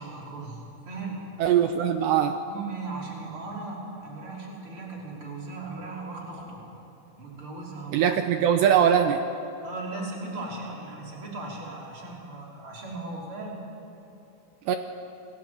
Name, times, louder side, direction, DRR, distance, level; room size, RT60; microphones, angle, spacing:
voice 1, 0.0-1.2 2.5-6.6 7.2-8.0 9.6-13.6, right 3 dB, 25° right, -3 dB, 5.8 m, -37 dB
voice 2, 1.4-2.4 7.9-9.2 14.7-14.8, right 9 dB, 80° right, 6 dB, 2.6 m, -21 dB
28.5 x 21.5 x 9.5 m, 2.9 s
omnidirectional pair, 5.9 m